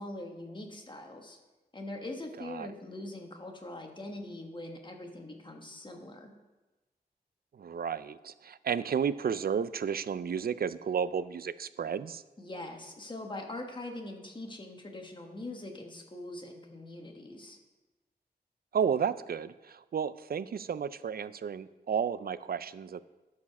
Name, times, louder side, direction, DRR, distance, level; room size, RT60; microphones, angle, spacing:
voice 1, 0.0-1.4 1.7-6.3 12.4-17.6, left 2 dB, 30° left, 2 dB, 1.4 m, -42 dB
voice 2, 2.4-2.7 7.6-12.2 18.7-23.0, right 7 dB, 65° right, 15 dB, 0.4 m, -32 dB
12.5 x 4.9 x 5.9 m, 1.1 s
wide cardioid pair, 95°, 17 cm